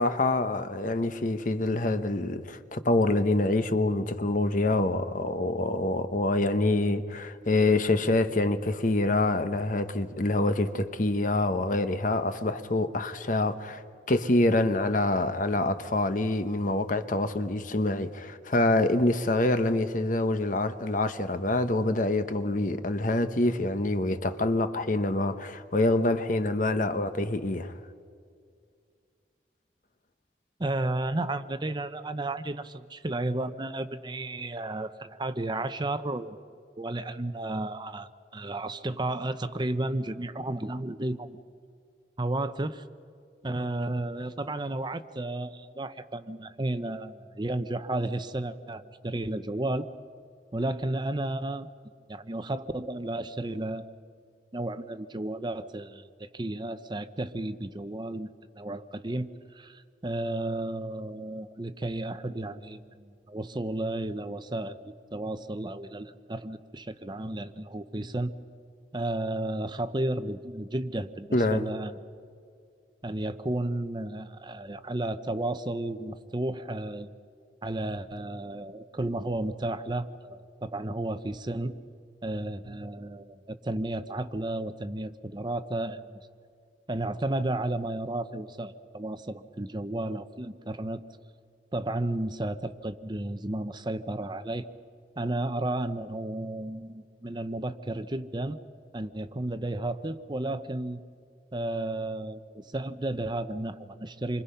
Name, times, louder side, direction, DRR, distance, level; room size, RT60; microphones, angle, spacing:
voice 1, 0.0-13.8 14.1-27.7 71.3-71.6, left 2 dB, 50° left, 1.0 m, -26 dB
voice 2, 30.6-36.4 36.8-41.4 42.2-42.8 43.4-49.9 50.5-51.7 52.1-53.9 54.5-68.3 68.9-72.0 73.0-77.1 77.6-81.7 82.2-86.2 86.9-91.0 91.7-94.7 95.2-98.6 98.9-101.0 101.5-104.4, right 1 dB, 25° right, 0.8 m, -33 dB
28.0 x 24.5 x 5.7 m
head